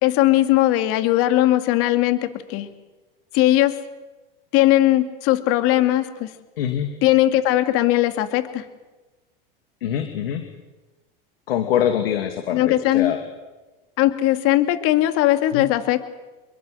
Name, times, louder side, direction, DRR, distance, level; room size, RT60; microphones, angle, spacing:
voice 1, 0.0-2.7 3.3-3.8 4.5-6.3 7.0-8.6 12.5-13.1 14.0-16.0, left 15 dB, 50° left, 9 dB, 2.5 m, -19 dB
voice 2, 6.6-6.9 9.8-10.4 11.5-13.2 15.5-15.6, left 10 dB, 80° left, 6 dB, 2.7 m, -24 dB
27.5 x 22.5 x 8.0 m, 1.2 s
hypercardioid pair, 110°, 29 cm